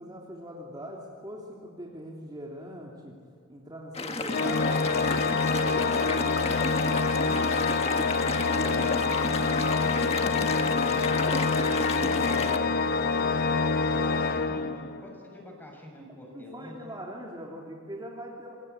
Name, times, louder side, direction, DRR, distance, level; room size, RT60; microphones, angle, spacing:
voice 1, 0.0-3.2 3.5-5.0 5.5-8.0 12.0-12.3 16.3-18.5, equal, 20° right, -2 dB, 3.1 m, -42 dB
sound 1, 3.9-12.6, left 3 dB, 30° left, 1.6 m, -32 dB
Organ, 4.3-15.2, left 4 dB, 50° left, 1.0 m, -26 dB
voice 2, 8.3-9.3 9.6-10.0 10.3-11.5 12.0-16.9, left 1 dB, 10° left, 1 dB, 7.1 m, -43 dB
27.5 x 25.0 x 8.4 m, 2.3 s
head